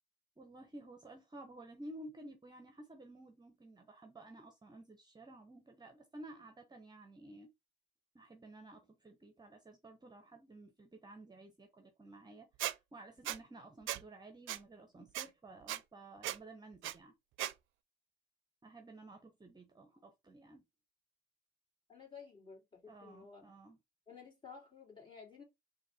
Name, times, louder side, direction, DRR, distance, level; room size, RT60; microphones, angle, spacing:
voice 1, 0.4-7.5 8.1-12.5 12.9-17.1 18.6-20.6 22.9-23.8, right 2 dB, 20° right, 0.8 m, -53 dB
Squeak, 12.6-12.7 13.3-13.4 13.9-14.0 14.5-14.6 15.1-15.3 15.7-15.8 16.2-16.4 16.8-16.9 17.4-17.5, right 14 dB, 80° right, 0.4 m, -37 dB
voice 2, 21.9-23.4 24.1-25.4, left 5 dB, 25° left, 2.9 m, -53 dB
4.0 x 2.7 x 4.0 m
cardioid pair, 90°, 20 cm